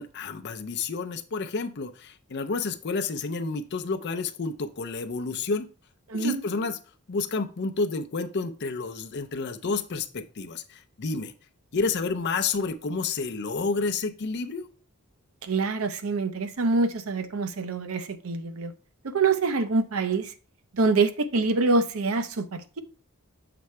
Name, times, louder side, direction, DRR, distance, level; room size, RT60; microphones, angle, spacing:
voice 1, 0.0-5.7 6.1-6.8 7.1-11.3 11.7-14.7, left 4 dB, 50° left, 0.6 m, -30 dB
voice 2, 6.1-6.7 15.4-18.7 19.0-20.3 20.7-22.8, right 3 dB, 70° right, 0.7 m, -25 dB
6.9 x 4.5 x 3.2 m
head